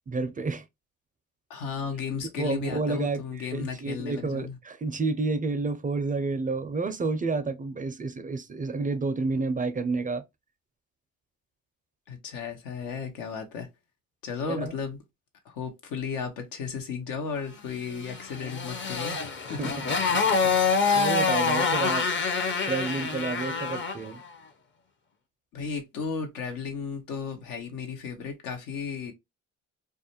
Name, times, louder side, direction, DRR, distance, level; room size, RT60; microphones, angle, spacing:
voice 1, 0.1-0.6 2.4-10.2 14.5-14.7 19.6-19.9 20.4-20.7 20.9-22.1 22.7-24.2, right 3 dB, 25° right, 0.4 m, -30 dB
voice 2, 1.5-4.6 12.1-13.7 14.2-15.0 15.4-20.0 25.5-29.1, left 6 dB, 80° left, 0.8 m, -34 dB
Motorcycle, 18.0-24.1, left 4 dB, 35° left, 0.6 m, -26 dB
2.4 x 2.1 x 2.8 m
supercardioid pair, 60°, 33 cm